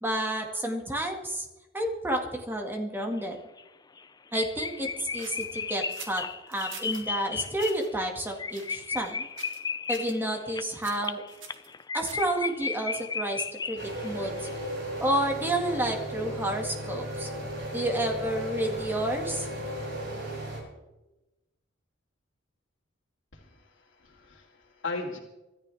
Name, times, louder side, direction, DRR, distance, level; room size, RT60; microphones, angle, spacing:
voice 1, 0.0-1.5 1.7-3.4 4.3-6.2 6.5-9.3 9.9-11.2 11.9-14.5 15.0-17.3 17.7-19.5, right 1 dB, 10° right, 2 dB, 2.0 m, -30 dB
sound 1, 3.2-3.3 3.6-3.7 4.0-4.1 4.3-14.2 14.4-14.5, left 5 dB, 20° left, 0.5 m, -35 dB
sound 2, 5.2-7.1 7.5-7.9 8.5-9.1 9.4-9.7 9.9-10.2 10.8-12.4, right 6 dB, 85° right, 2.5 m, -46 dB
sound 3, 13.8-20.6, right 1 dB, 65° right, 7.4 m, -35 dB
voice 2, 23.3-25.2, left 3 dB, 75° left, -6 dB, 2.6 m, -38 dB
25.5 x 13.0 x 3.5 m, 1.0 s
head